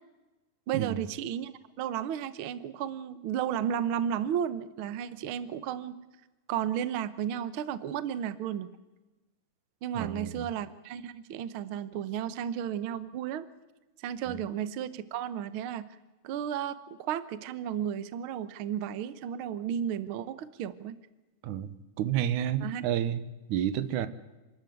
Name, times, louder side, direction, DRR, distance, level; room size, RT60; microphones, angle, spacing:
voice 1, 0.7-1.5 1.8-6.0 6.5-8.7 9.8-13.5 14.0-15.9 16.2-21.0 22.6-22.8, right 9 dB, 65° right, 1.3 m, -33 dB
voice 2, 9.9-10.5 14.3-14.4 21.4-24.1, right 10 dB, 85° right, 2.4 m, -30 dB
27.0 x 13.0 x 9.3 m
omnidirectional pair, 3.4 m